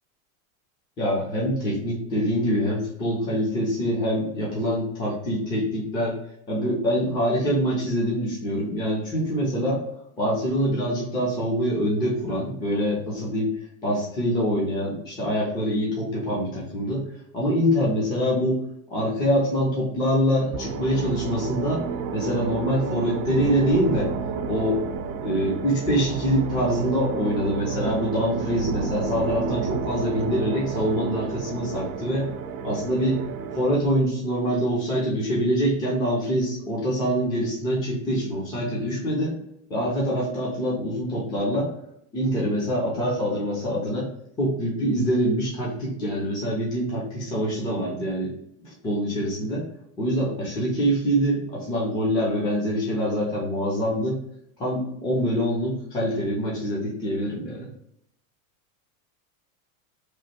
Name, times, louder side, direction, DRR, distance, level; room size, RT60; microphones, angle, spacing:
voice 1, 1.0-6.2 6.5-9.8 10.2-13.5 13.8-17.0 17.3-18.6 18.9-21.8 22.1-24.1 24.5-24.8 25.2-32.3 32.6-33.2 33.5-39.3 39.7-41.7 42.1-44.1 44.4-48.3 48.6-49.6 50.0-54.2 54.6-57.7, equal, 10° left, -5 dB, 0.5 m, -25 dB
sound 1, 20.5-33.9, right 6 dB, 90° right, 0.6 m, -31 dB
3.1 x 2.5 x 4.1 m, 0.73 s
supercardioid pair, 175°, 41 cm